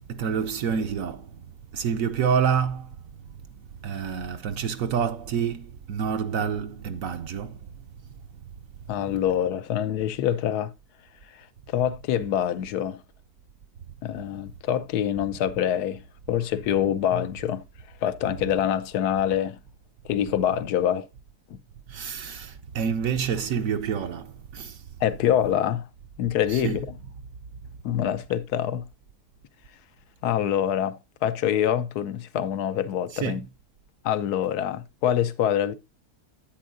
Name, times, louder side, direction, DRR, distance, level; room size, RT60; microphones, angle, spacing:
voice 1, 0.1-1.5 1.7-2.9 3.8-7.7 21.9-24.8 26.5-26.8 33.1-33.4, right 7 dB, 70° right, 1.0 m, -28 dB
voice 2, 8.9-10.7 11.3-13.0 14.0-16.0 16.3-17.6 18.0-19.6 20.0-21.1 21.5-21.6 25.0-25.9 26.2-26.9 27.8-28.9 30.2-33.4 34.0-35.7, left 10 dB, 85° left, 1.2 m, -25 dB
10.0 x 8.6 x 2.5 m
omnidirectional pair, 1.6 m